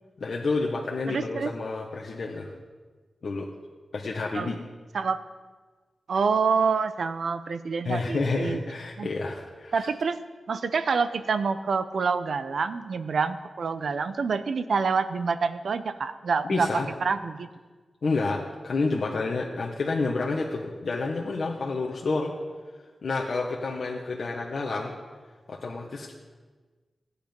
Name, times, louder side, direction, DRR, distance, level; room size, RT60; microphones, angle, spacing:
voice 1, 0.2-2.5 3.2-3.5 3.9-4.6 7.8-9.7 16.5-16.9 18.0-22.3 23.0-24.9 25.5-26.1, left 3 dB, 65° left, -2 dB, 1.5 m, -29 dB
voice 2, 1.1-1.5 4.3-4.5 4.9-5.2 6.1-8.6 9.0-9.1 9.7-10.2 10.5-16.7 17.0-17.5, right 5 dB, 80° right, 11 dB, 0.8 m, -27 dB
16.5 x 10.0 x 5.3 m, 1.4 s
wide cardioid pair, 80°, 0 cm